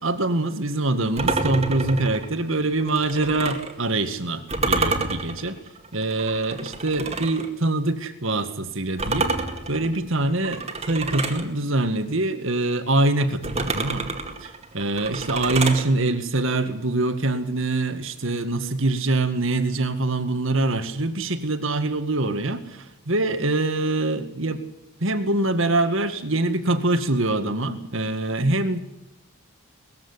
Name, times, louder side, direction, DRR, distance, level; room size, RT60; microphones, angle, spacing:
voice 1, 0.0-5.6 5.9-9.3 9.7-24.6 25.0-28.8, right 2 dB, 60° right, 9 dB, 2.0 m, -24 dB
sound 1, 1.2-3.7 4.5-7.5 9.0-11.5 13.4-15.8, right 3 dB, 30° right, 2.2 m, -28 dB
20.0 x 15.0 x 9.9 m, 0.88 s
head